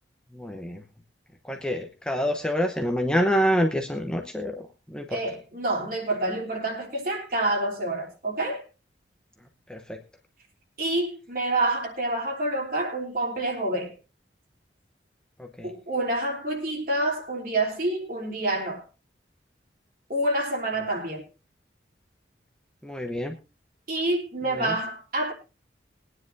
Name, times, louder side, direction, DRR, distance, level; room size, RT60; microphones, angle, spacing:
voice 1, 0.3-0.8 1.4-5.2 9.7-10.0 15.4-15.7 22.8-23.4 24.5-24.8, equal, 5° left, 0.9 m, -27 dB
voice 2, 5.1-8.7 10.8-13.9 15.6-18.8 20.1-21.2 23.9-25.3, right 2 dB, 50° right, 3.2 m, -27 dB
21.5 x 9.8 x 2.6 m
head